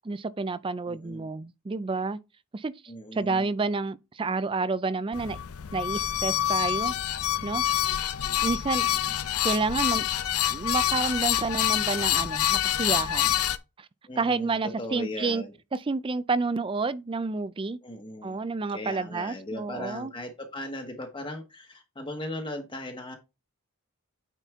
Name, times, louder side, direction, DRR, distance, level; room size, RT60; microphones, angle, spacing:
voice 1, 0.0-2.2 2.5-2.7 3.1-5.4 5.7-6.9 7.4-7.6 8.4-8.9 9.4-10.1 10.5-13.3 13.8-13.9 14.2-15.4 15.7-17.8 18.2-20.1, right 3 dB, 25° right, 0.4 m, -29 dB
voice 2, 0.8-1.3 2.9-3.5 14.1-15.5 17.8-18.4 18.7-23.2, left 1 dB, 25° left, 1.1 m, -38 dB
sound 1, 5.1-13.6, left 11 dB, 80° left, 0.6 m, -26 dB
9.0 x 4.2 x 3.6 m
head